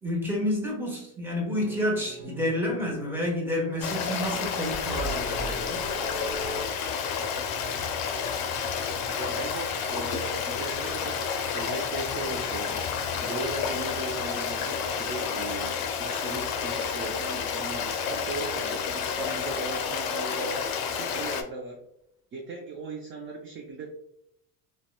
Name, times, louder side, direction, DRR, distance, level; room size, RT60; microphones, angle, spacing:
voice 1, 0.0-5.8, left 1 dB, 5° right, -2 dB, 0.9 m, -29 dB
sound 1, 1.5-6.6, right 2 dB, 55° right, 0.8 m, -40 dB
sound 2, 3.1-20.0, left 5 dB, 20° left, 1.0 m, -47 dB
Stream, 3.8-21.4, left 6 dB, 55° left, 0.5 m, -30 dB
voice 2, 9.2-11.2 11.5-12.8 13.2-20.6 21.0-21.8 22.3-23.9, right 2 dB, 30° right, 0 dB, 0.4 m, -37 dB
2.7 x 2.2 x 2.3 m, 0.76 s
supercardioid pair, 95°, 45 cm